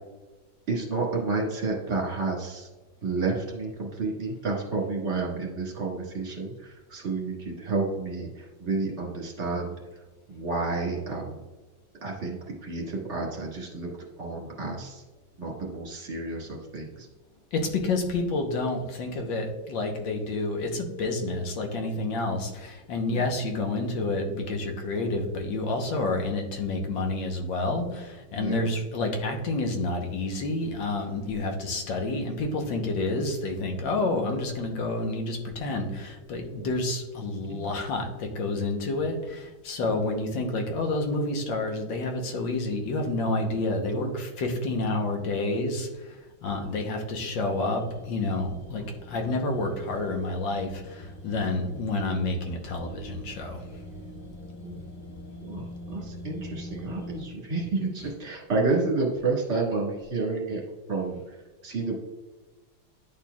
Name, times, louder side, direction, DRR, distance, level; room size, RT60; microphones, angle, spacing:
voice 1, 0.7-2.7 3.0-9.7 10.3-11.4 12.0-12.4 12.6-13.9 14.2-15.0 15.4-17.1 23.1-23.2 28.3-28.7 36.5-36.7 37.4-37.7 39.8-40.0 43.9-44.1 46.6-46.7 54.6-54.8 55.4-60.6 60.9-61.4 61.6-62.0, right 3 dB, 35° right, -2 dB, 1.9 m, -30 dB
voice 2, 17.5-53.6, left 2 dB, 75° left, 3 dB, 1.6 m, -29 dB
sound 1, 47.4-57.3, left 1 dB, 35° left, 1.0 m, -43 dB
10.5 x 4.4 x 2.3 m, 1.2 s
omnidirectional pair, 2.1 m